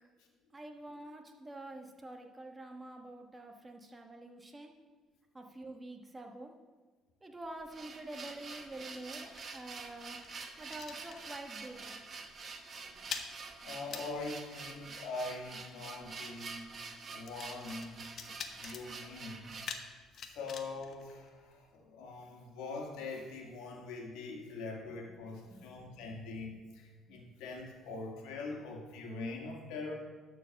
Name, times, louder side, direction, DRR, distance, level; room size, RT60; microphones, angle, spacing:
voice 1, 0.5-4.7 5.3-6.5 7.2-10.2 10.6-12.0 25.5-25.8 27.1-27.3, right 2 dB, 15° right, 3 dB, 1.2 m, -47 dB
sound 1, 7.5-19.8, right 4 dB, 40° right, 1.0 m, -47 dB
sound 2, 8.3-11.7 11.9-12.2 12.4-21.8, left 6 dB, 50° left, 0.9 m, -48 dB
voice 2, 13.6-16.8 17.1-18.0 18.6-19.5 20.2-29.9, left 3 dB, 85° left, 1 dB, 1.8 m, -43 dB
12.0 x 4.5 x 6.4 m, 1.3 s
cardioid pair, 110°, 0 cm